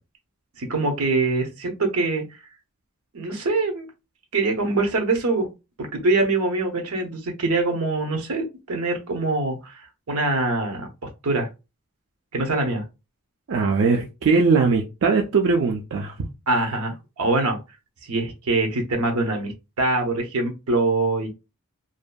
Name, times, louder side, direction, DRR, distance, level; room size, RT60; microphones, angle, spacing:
voice 1, 0.6-2.2 3.1-3.9 4.3-5.5 5.8-9.7 10.1-11.5 12.3-12.8 16.5-17.6 18.1-21.3, right 2 dB, 85° right, 3 dB, 0.8 m, -24 dB
voice 2, 13.5-16.3, right 4 dB, 60° right, 1 dB, 0.4 m, -20 dB
2.6 x 2.4 x 2.2 m, 0.27 s
head